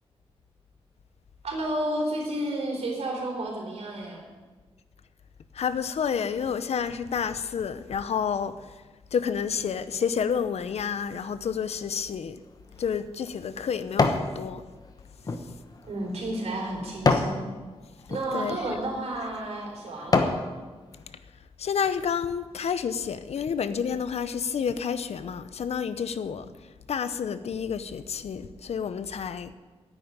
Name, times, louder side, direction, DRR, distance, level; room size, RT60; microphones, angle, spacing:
voice 1, 1.4-4.2 15.9-17.5 18.1-20.4, right 1 dB, 85° right, 4.1 m, -31 dB
voice 2, 5.5-8.8 9.1-12.4 12.8-14.6 15.5-15.6 18.3-18.6 21.6-29.5, left 7 dB, 80° left, 0.8 m, -30 dB
sound 1, 12.5-14.3 14.8-17.4 18.0-18.2 18.9-19.1 19.6-20.5 20.9-21.0, left 3 dB, 35° left, 1.1 m, -27 dB
10.0 x 8.9 x 9.6 m
wide cardioid pair, 160°, 11 cm